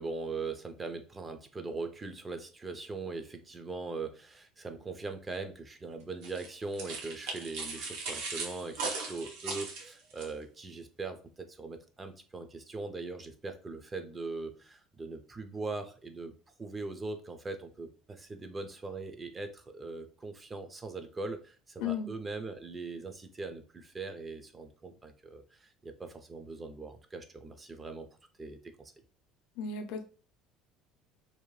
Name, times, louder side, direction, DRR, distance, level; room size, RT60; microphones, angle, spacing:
voice 1, 0.0-28.1 28.4-28.9, right 3 dB, 20° right, 7 dB, 0.4 m, -41 dB
sound 1, 6.2-10.3, right 4 dB, 80° right, 0.7 m, -38 dB
voice 2, 21.8-22.1 29.6-30.0, left 6 dB, 75° left, 7 dB, 0.4 m, -34 dB
2.6 x 2.1 x 3.0 m, 0.37 s
cardioid pair, 130°, 0 cm